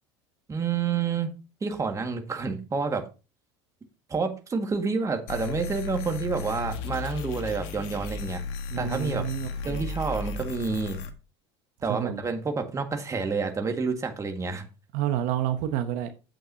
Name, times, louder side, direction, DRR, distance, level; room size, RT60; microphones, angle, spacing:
voice 1, 0.5-1.3 1.6-3.0 4.1-8.4 8.7-9.2 9.6-11.0 11.8-14.6, right 4 dB, 20° right, 1.9 m, -29 dB
sound 1, 5.3-11.1, left 4 dB, 75° left, 1.3 m, -35 dB
voice 2, 8.7-9.9 11.9-12.2 14.9-16.1, right 11 dB, 65° right, 1.0 m, -29 dB
9.0 x 7.8 x 2.8 m
supercardioid pair, 100°, 14 cm